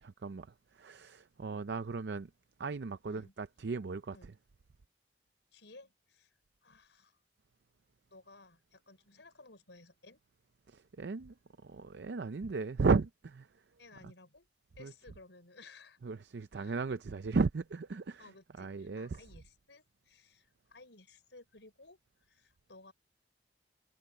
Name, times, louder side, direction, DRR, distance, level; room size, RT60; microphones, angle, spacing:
voice 1, 0.0-2.3 2.6-4.3 10.7-11.3 11.6-13.5 14.0-14.1 14.8-14.9 16.0-18.3 18.6-19.2, right 4 dB, 70° right, 0.5 m, -35 dB
voice 2, 5.5-6.3 6.6-7.2 8.1-10.2 13.8-14.5 14.8-16.0 16.6-16.7 18.2-22.0 22.3-22.9, left 3 dB, 85° left, 5.3 m, -57 dB
head